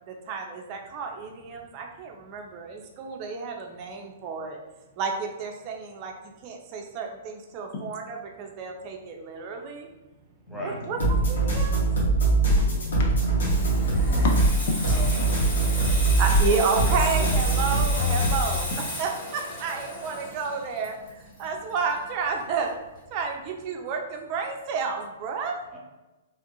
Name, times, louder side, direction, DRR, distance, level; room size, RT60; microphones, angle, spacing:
voice 1, 0.1-4.6 5.0-9.9 10.6-11.8 12.6-12.7 14.0-14.3 16.2-18.7 19.0-22.7 23.1-25.6, right 5 dB, 35° right, 2 dB, 0.5 m, -31 dB
voice 2, 10.5-10.9 12.3-14.6 14.9-15.3 18.7-18.8, left 2 dB, 50° left, -1 dB, 0.7 m, -32 dB
sound 1, 11.0-18.6, right 2 dB, 85° left, 1.1 m, -22 dB
Water tap faucet / Sink (filling or washing), 13.1-22.4 22.7-23.0, left 1 dB, 30° left, 1.3 m, -35 dB
voice 3, 14.9-16.1 16.5-17.3 25.7-25.8, left 1 dB, ahead, -5 dB, 0.6 m, -38 dB
3.0 x 2.4 x 2.9 m, 1.1 s
hypercardioid pair, 150°, 0 cm